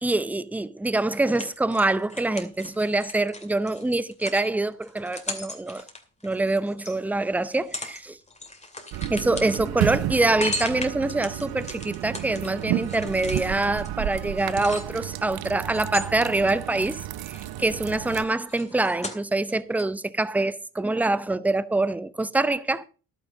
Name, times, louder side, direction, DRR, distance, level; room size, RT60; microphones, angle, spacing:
voice 1, 0.0-5.8 6.2-8.2 9.1-22.8, right 2 dB, 5° right, 0.6 m, -25 dB
sound 1, 1.1-7.0 7.4-8.0 8.3-15.2 15.7-17.0 17.3-19.5 19.8-19.9, left 2 dB, 15° left, 2.5 m, -38 dB
sound 2, 8.9-18.2, right 14 dB, 60° right, 0.7 m, -32 dB
11.0 x 9.3 x 5.0 m
hypercardioid pair, 60°, 42 cm